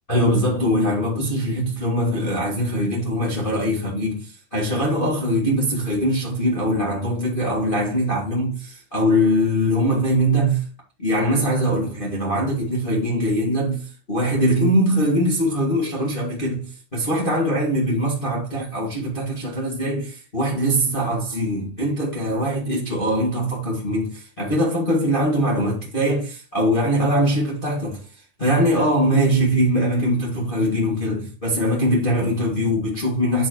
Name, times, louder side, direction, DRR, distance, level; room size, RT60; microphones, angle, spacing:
voice 1, 0.1-10.6 11.0-28.0 28.4-33.5, equal, 25° left, 1.2 m, -22 dB
9.8 x 4.6 x 3.0 m
omnidirectional pair, 4.4 m